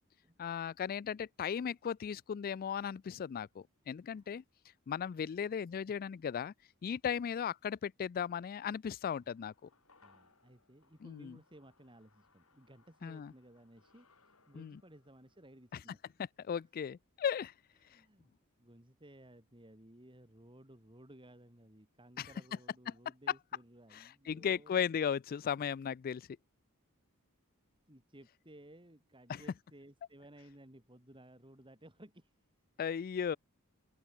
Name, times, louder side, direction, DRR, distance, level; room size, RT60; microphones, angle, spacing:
voice 1, 0.4-4.4 4.9-6.5 6.8-9.7 11.0-11.4 13.0-13.3 14.5-14.8 15.7-15.8 16.4-17.5 22.2-22.3 23.9-26.3 29.3-29.4 32.8-33.4, left 7 dB, 45° left, 0.3 m, -36 dB
sound 1, 9.1-17.6 17.9-18.0, left 4 dB, 75° left, 6.9 m, -71 dB
voice 2, 10.0-16.1 16.5-16.6 17.8-18.3 18.6-24.8 27.9-32.4, right 1 dB, 25° right, 5.6 m, -58 dB
open air
head